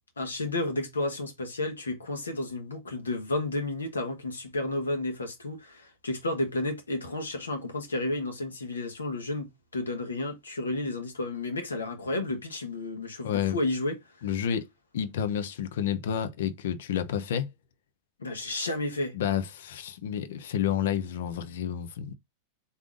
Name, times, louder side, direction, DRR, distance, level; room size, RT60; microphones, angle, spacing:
voice 1, 0.2-14.0 18.2-19.1, left 2 dB, 80° left, 1.5 m, -32 dB
voice 2, 13.2-13.6 14.2-14.6 14.9-17.5 19.1-22.1, left 9 dB, 65° left, 0.7 m, -30 dB
4.0 x 3.5 x 3.7 m
figure-of-eight pair, 90°, 0 cm